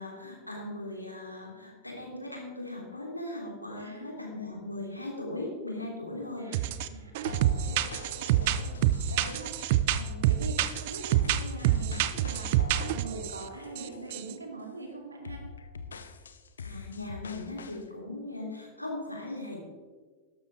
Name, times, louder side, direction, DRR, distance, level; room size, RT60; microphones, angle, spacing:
voice 1, 0.0-6.5 16.6-19.6, left 2 dB, 85° left, -1 dB, 3.2 m, -38 dB
voice 2, 3.7-4.1 6.4-15.4, right 3 dB, 75° right, 2 dB, 2.4 m, -43 dB
sound 1, 6.5-6.9 7.1-13.4 13.8-13.9 14.1-14.3, right 12 dB, 50° right, 0.6 m, -27 dB
sound 2, 7.2-14.2 14.6-14.8 15.2-17.8, left 5 dB, 70° left, 0.8 m, -44 dB
12.5 x 12.5 x 3.8 m, 1.4 s
figure-of-eight pair, 90°, 0 cm